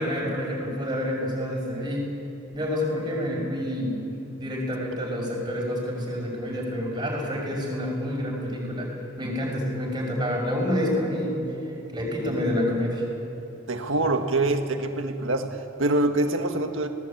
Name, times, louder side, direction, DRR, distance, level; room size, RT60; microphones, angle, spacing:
voice 1, 0.0-2.1 2.5-4.0 4.4-8.9 9.2-11.5 11.9-13.0, left 1 dB, 20° right, -1 dB, 5.7 m, -28 dB
voice 2, 13.7-16.9, right 2 dB, 70° right, 5 dB, 1.7 m, -25 dB
28.5 x 19.0 x 8.6 m, 2.8 s
head